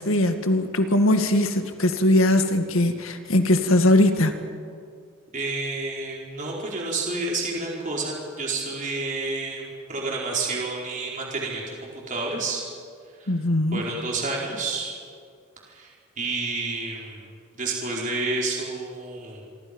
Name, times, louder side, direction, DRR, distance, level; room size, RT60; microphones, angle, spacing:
voice 1, 0.0-4.3 13.3-13.8, left 1 dB, 75° left, 7 dB, 1.9 m, -20 dB
voice 2, 5.3-12.6 13.2-13.3 13.7-14.9 15.7-17.3 17.5-19.4, right 3 dB, 40° right, -3 dB, 4.7 m, -30 dB
28.0 x 24.0 x 5.4 m, 2.2 s
head